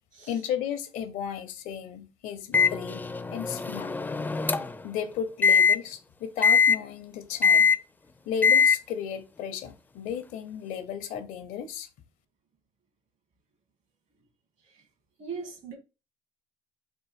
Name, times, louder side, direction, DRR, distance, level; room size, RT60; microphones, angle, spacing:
voice 1, 0.3-3.0 3.3-4.0 4.8-7.7 8.3-11.9, left 8 dB, 75° left, 0.7 m, -34 dB
Microwave oven, 2.5-4.9 5.4-5.7 6.4-6.8 7.4-7.8 8.4-8.8, left 6 dB, 15° left, 0.4 m, -21 dB
voice 2, 15.2-15.8, right 5 dB, 60° right, 1.6 m, -39 dB
3.7 x 2.6 x 4.1 m
supercardioid pair, 85°, 14 cm